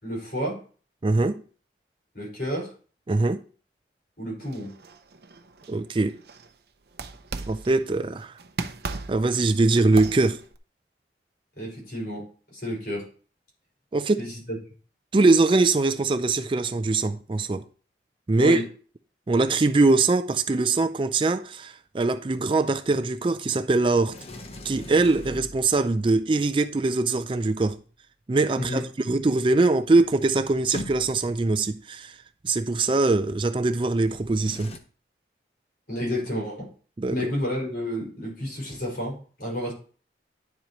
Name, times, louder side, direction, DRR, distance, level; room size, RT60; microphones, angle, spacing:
voice 1, 0.0-0.6 2.1-2.7 4.2-4.7 11.6-13.0 14.2-14.6 18.4-18.7 28.5-28.8 35.9-36.7 37.1-39.7, left 1 dB, 55° left, 5.5 m, -30 dB
voice 2, 1.0-1.4 3.1-3.4 5.7-6.2 7.5-8.3 9.1-10.4 13.9-14.3 15.1-17.6 18.3-18.6 19.3-24.2 24.6-27.8 28.3-32.1 32.4-34.7 37.0-37.2, right 3 dB, 30° right, 0.4 m, -22 dB
sound 1, 4.4-6.5 6.9-8.0 8.4-10.6, right 3 dB, 60° right, 0.7 m, -38 dB
Sliding door, 24.0-26.0 29.5-29.6 29.8-31.4 34.0-34.8, left 1 dB, 35° left, 0.9 m, -41 dB
10.5 x 7.5 x 3.0 m
head